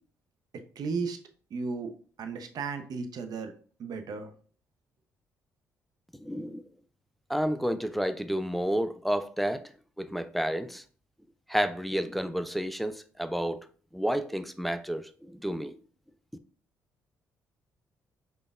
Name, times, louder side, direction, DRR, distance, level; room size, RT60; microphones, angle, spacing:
voice 1, 0.8-1.2 1.5-1.9 2.2-3.5 3.8-4.3, right 4 dB, 55° right, 0.6 m, -34 dB
voice 2, 6.2-6.6 7.3-9.6 10.0-10.8 11.5-13.6 13.9-15.7, equal, ahead, 0.4 m, -30 dB
5.0 x 2.2 x 2.4 m
hypercardioid pair, 50°, 8 cm